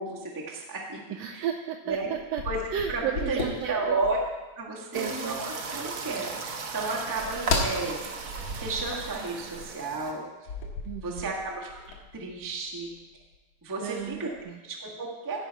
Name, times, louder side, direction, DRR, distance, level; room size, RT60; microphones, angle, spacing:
voice 1, 0.0-1.0 1.3-1.4 1.9-2.1 2.4-2.6 2.9-4.2 4.6-8.0 8.6-10.2 11.0-12.9 13.6-14.3 14.6-15.5, right 3 dB, 15° right, -3 dB, 0.6 m, -33 dB
voice 2, 1.1-2.4 2.7-4.0 4.9-5.4 10.9-11.3 13.8-14.6, right 9 dB, 80° right, 4 dB, 1.5 m, -33 dB
sound 1, 1.9-4.4 7.5-7.8 10.5-13.4 13.9-14.4, left 3 dB, 65° left, 2.4 m, -34 dB
sound 2, 4.9-10.1, right 4 dB, 60° right, 1.4 m, -36 dB
15.5 x 5.5 x 4.6 m, 1.2 s
omnidirectional pair, 3.3 m